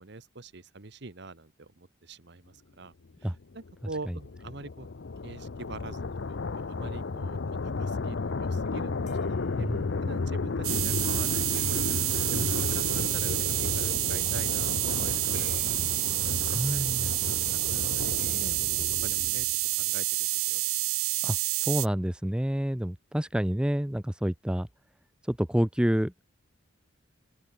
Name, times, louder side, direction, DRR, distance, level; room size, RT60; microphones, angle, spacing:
voice 1, 0.0-2.9 3.2-4.9 5.2-6.0 6.5-9.7 10.0-16.0 16.3-17.3 17.7-19.5 19.8-20.1 20.3-20.6, right 3 dB, 55° right, 1.2 m, -44 dB
sound 1, 3.4-19.6, left 3 dB, 60° left, 0.6 m, -33 dB
sound 2, 9.1-10.0 11.5-13.1 14.4-14.6 14.9-16.7 17.4-17.8 18.2-19.6, left 7 dB, 35° left, 2.2 m, -56 dB
voice 2, 9.6-9.9 12.3-12.5 16.6-17.1 21.2-21.4 21.7-24.7 25.3-26.2, equal, 5° right, 0.4 m, -28 dB
sound 3, 10.6-21.9, right 20 dB, 90° right, 0.6 m, -28 dB
open air
head